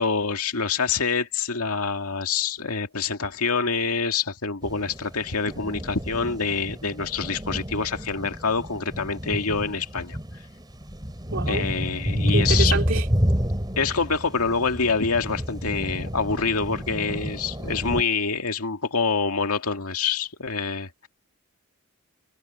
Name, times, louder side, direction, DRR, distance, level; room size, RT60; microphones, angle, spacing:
voice 1, 0.0-10.4 11.5-12.8 13.8-21.1, left 5 dB, 80° left, 2.1 m, -26 dB
sound 1, 4.6-18.0, equal, 20° right, 2.9 m, -29 dB
voice 2, 11.3-11.6 12.3-13.1, right 3 dB, 60° right, 2.6 m, -27 dB
head